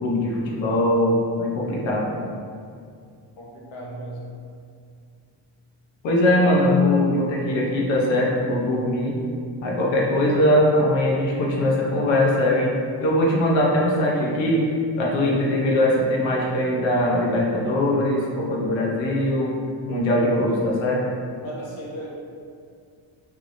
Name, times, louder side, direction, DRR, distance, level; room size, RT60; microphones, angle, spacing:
voice 1, 0.0-2.1 6.0-9.2 9.6-12.7 13.0-14.7 15.0-19.5 19.9-21.0, left 1 dB, 65° left, -3 dB, 0.8 m, -21 dB
voice 2, 3.4-4.2 20.2-20.3 21.4-22.1, right 1 dB, 85° left, -5 dB, 1.1 m, -36 dB
3.3 x 3.2 x 2.6 m, 2.3 s
cardioid pair, 175°, 48 cm